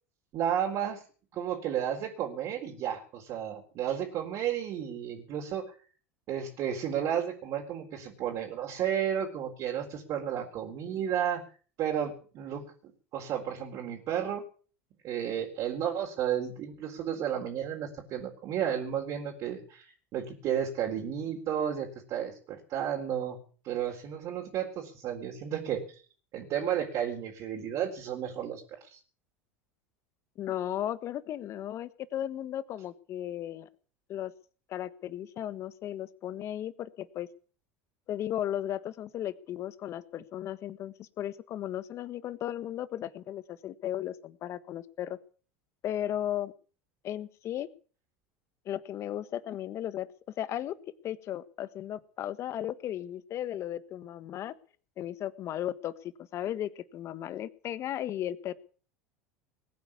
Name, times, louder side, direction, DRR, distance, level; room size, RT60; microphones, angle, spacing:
voice 1, 0.3-1.0 1.3-5.7 6.3-11.4 11.8-12.7 13.1-14.4 15.0-23.4 23.6-25.8 26.3-29.0, right 9 dB, 50° right, -1 dB, 4.1 m, -32 dB
voice 2, 30.4-33.7 34.1-34.3 34.7-37.3 38.1-45.2 45.8-46.5 47.0-47.7 48.6-50.1 50.4-50.7 51.0-54.5 55.0-58.5, left 11 dB, 45° left, 15 dB, 1.4 m, -35 dB
20.0 x 9.4 x 7.2 m, 0.41 s
hypercardioid pair, 85°, 7 cm